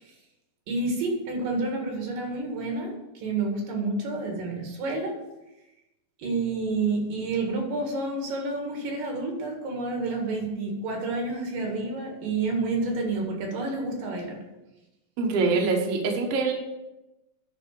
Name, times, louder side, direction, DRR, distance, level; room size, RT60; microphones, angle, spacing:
voice 1, 0.7-5.1 6.2-14.4, right 3 dB, 80° right, 1 dB, 3.5 m, -29 dB
voice 2, 15.2-16.5, right 4 dB, 60° right, 1 dB, 1.9 m, -24 dB
11.5 x 4.0 x 6.6 m, 0.97 s
omnidirectional pair, 3.8 m